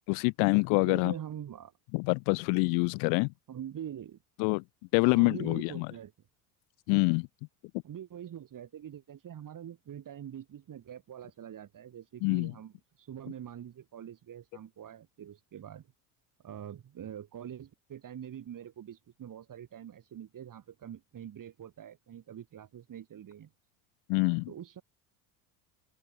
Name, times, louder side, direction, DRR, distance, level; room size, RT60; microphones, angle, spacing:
voice 1, 0.1-1.1 1.9-3.3 4.4-4.6 4.9-5.9 6.9-7.3 12.2-12.5 24.1-24.5, left 38 dB, 65° left, 0.9 m, -26 dB
voice 2, 0.9-1.7 3.5-4.2 5.0-6.1 7.8-15.9 16.4-23.5 24.5-24.8, right 10 dB, 45° right, 6.9 m, -44 dB
open air
hypercardioid pair, 80°, 46 cm